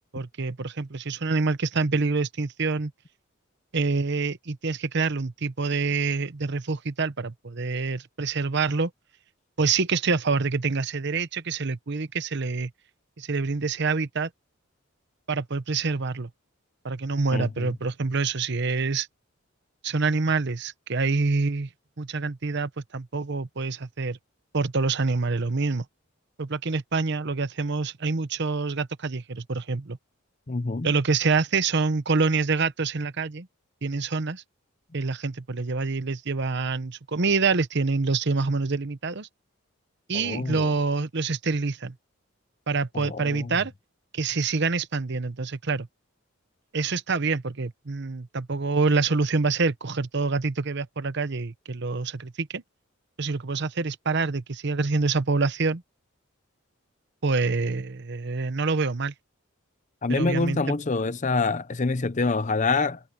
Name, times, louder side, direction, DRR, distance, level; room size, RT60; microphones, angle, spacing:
voice 1, 0.1-2.9 3.7-8.9 9.6-12.7 13.2-14.3 15.3-16.3 16.8-19.1 19.8-21.7 22.0-24.2 24.5-25.8 26.4-30.0 30.8-33.5 33.8-34.4 34.9-39.3 40.1-41.9 42.7-43.7 44.1-45.9 46.7-52.6 53.2-55.8 57.2-59.1 60.1-60.6, right 4 dB, 55° right, 0.9 m, -26 dB
voice 2, 17.3-17.7 30.5-30.9 40.1-40.7 42.9-43.6 60.0-63.0, left 3 dB, 35° left, 0.7 m, -26 dB
head